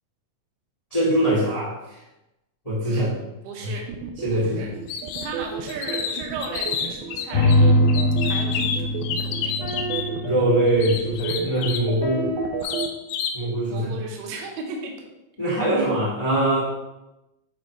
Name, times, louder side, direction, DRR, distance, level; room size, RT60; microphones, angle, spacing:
voice 1, 0.9-2.0 2.6-3.1 3.6-3.7 4.2-4.7 10.2-12.2 12.6-12.7 13.3-13.9 15.4-16.6, right 1 dB, 50° left, -9 dB, 0.4 m, -22 dB
voice 2, 2.8-3.8 4.3-7.7 8.2-9.6 13.7-14.9, right 3 dB, 70° right, 0 dB, 2.0 m, -36 dB
sound 1, 3.9-12.9, right 8 dB, 90° right, 2.8 m, -32 dB
sound 2, 4.9-5.3 5.7-7.6 7.9-10.1 10.8-11.9 12.6-13.4, left 7 dB, 85° left, 2.8 m, -29 dB
sound 3, 7.3-11.4 12.0-12.6, left 1 dB, 70° left, 2.2 m, -23 dB
8.8 x 4.7 x 3.2 m, 0.96 s
omnidirectional pair, 4.9 m